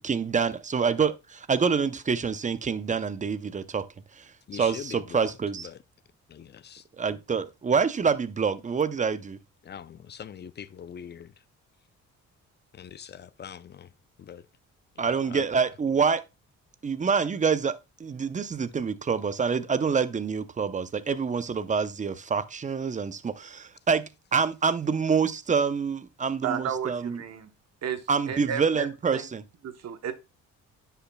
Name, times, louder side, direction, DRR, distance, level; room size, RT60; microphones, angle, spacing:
voice 1, 0.0-3.9 4.2-5.7 7.0-9.4 15.0-16.2 16.8-27.2 28.1-29.4, right 5 dB, 25° right, 0.6 m, -26 dB
voice 2, 4.5-5.3 5.6-5.8 6.3-6.8 9.6-11.3 12.7-13.9 14.2-14.4 15.0-15.5, left 8 dB, 35° left, 0.5 m, -42 dB
voice 3, 26.4-27.5 27.8-29.3 29.6-30.1, right 8 dB, 60° right, 1.0 m, -33 dB
9.7 x 5.8 x 2.2 m
cardioid pair, 90°, 30 cm